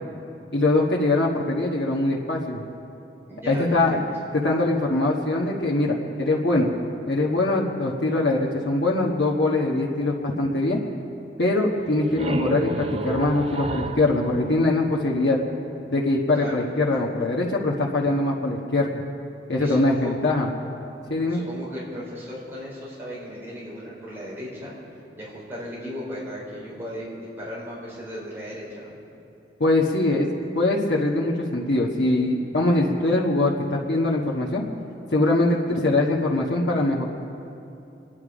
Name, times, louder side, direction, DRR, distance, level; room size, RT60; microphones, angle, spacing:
voice 1, 0.5-2.6 3.5-4.0 4.4-6.7 7.1-10.8 11.4-15.4 15.9-19.0 19.5-20.5 21.1-21.4 29.6-30.3 30.5-34.7 35.1-37.0, left 2 dB, 75° left, -4 dB, 1.5 m, -22 dB
voice 2, 3.3-3.8 16.4-16.6 19.6-20.2 21.3-24.7 25.1-29.0, equal, 15° right, -7 dB, 4.5 m, -36 dB
sound 1, 11.8-15.5, right 1 dB, 35° right, 0.6 m, -31 dB
26.0 x 10.5 x 5.1 m, 2.8 s
head